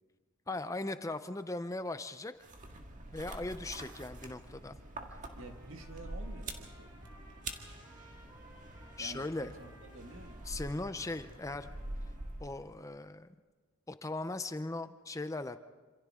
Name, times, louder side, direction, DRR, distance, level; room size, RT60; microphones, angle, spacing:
voice 1, 0.5-2.3 3.1-4.8 9.0-9.5 10.5-11.8 12.4-13.3 13.9-15.6, left 2 dB, 15° left, 10 dB, 0.5 m, -38 dB
sound 1, 2.4-12.8, right 2 dB, 35° right, 1.8 m, -46 dB
Trumpet, 5.3-12.4, equal, 15° right, 5.7 m, -60 dB
voice 2, 5.3-7.0 9.0-10.5, right 2 dB, 65° right, 4 dB, 2.0 m, -50 dB
27.0 x 27.0 x 3.7 m, 1.3 s
head